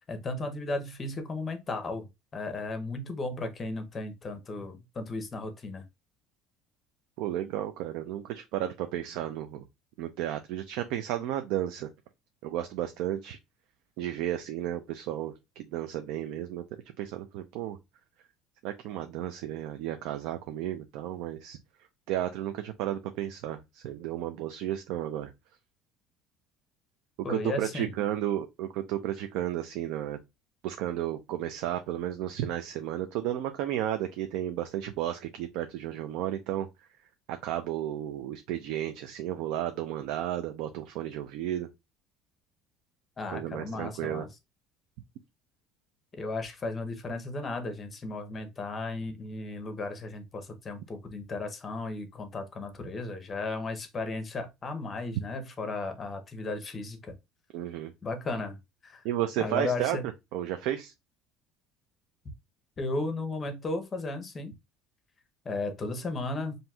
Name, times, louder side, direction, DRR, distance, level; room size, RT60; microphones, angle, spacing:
voice 1, 0.1-2.1 2.3-5.8 27.2-27.9 43.2-44.3 46.1-57.1 58.0-58.6 58.8-59.0 59.4-60.1 62.8-64.5 65.4-66.6, left 2 dB, 20° left, 0.6 m, -35 dB
voice 2, 7.2-9.6 10.0-11.9 12.4-13.4 14.0-16.6 17.0-17.8 18.6-21.6 22.1-25.3 27.3-30.2 30.6-36.7 37.3-41.7 43.3-44.3 57.5-57.9 59.0-60.0 60.3-60.9, right 12 dB, 70° right, 0.4 m, -33 dB
5.6 x 2.6 x 2.3 m
cardioid pair, 180°, 0 cm